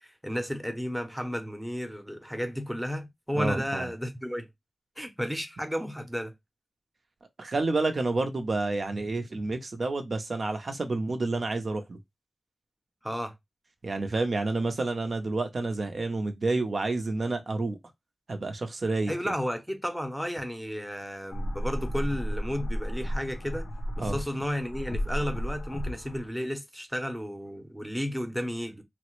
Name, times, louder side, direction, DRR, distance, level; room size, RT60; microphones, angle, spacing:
voice 1, 0.0-4.5 5.0-6.3 13.0-13.3 19.1-23.7 24.0-28.8, equal, ahead, 0.7 m, -33 dB
voice 2, 3.3-3.9 7.4-12.0 13.8-17.8 18.3-19.1 24.0-24.2, right 3 dB, 60° right, 0.6 m, -29 dB
sound 1, 21.3-26.3, equal, 85° left, 0.5 m, -33 dB
3.2 x 2.0 x 3.0 m
wide cardioid pair, 85°, 0 cm